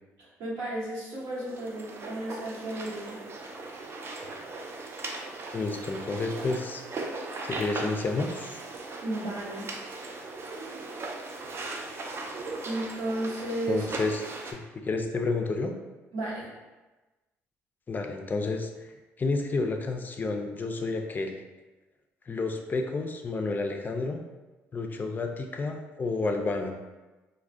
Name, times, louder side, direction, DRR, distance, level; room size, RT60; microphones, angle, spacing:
voice 1, 0.2-3.2 9.0-9.7 12.6-13.8 16.1-16.5, right 1 dB, 85° right, -6 dB, 1.0 m, -33 dB
sound 1, 1.1-14.5, right 2 dB, 45° right, 0.4 m, -38 dB
voice 2, 5.5-6.8 7.4-8.6 13.7-14.2 14.5-15.7 17.9-21.4 22.3-24.2 24.7-26.8, left 3 dB, 30° left, 4 dB, 0.4 m, -30 dB
2.4 x 2.1 x 3.4 m, 1.2 s
supercardioid pair, 70°, 6 cm